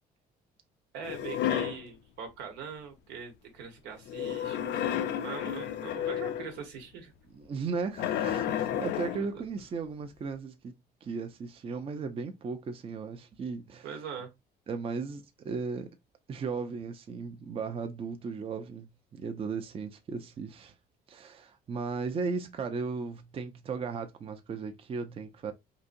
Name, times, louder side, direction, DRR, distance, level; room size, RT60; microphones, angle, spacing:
voice 1, 0.9-7.1 9.2-9.4 13.8-14.3, right 6 dB, 90° right, 1.2 m, -42 dB
sound 1, 1.0-1.9 4.1-6.6 8.0-9.3, left 10 dB, 80° left, 0.5 m, -31 dB
voice 2, 7.3-10.7 11.0-13.9 14.7-15.9 16.3-20.7 21.1-25.5, right 5 dB, 35° right, 0.5 m, -36 dB
3.9 x 2.7 x 2.6 m
cardioid pair, 110°, 17 cm